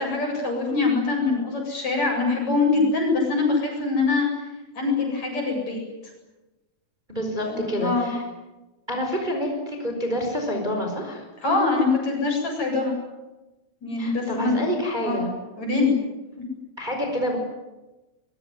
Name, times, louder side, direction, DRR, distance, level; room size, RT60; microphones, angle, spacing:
voice 1, 0.0-4.3 4.8-5.8 7.4-8.1 11.4-12.9 13.8-14.6 15.0-15.2 15.6-16.0, left 3 dB, 45° left, 1 dB, 9.3 m, -23 dB
voice 2, 7.1-8.2 8.9-11.2 14.0-15.4 16.8-17.4, equal, 10° right, 2 dB, 5.0 m, -27 dB
25.0 x 22.5 x 9.7 m, 1.1 s
omnidirectional pair, 4.3 m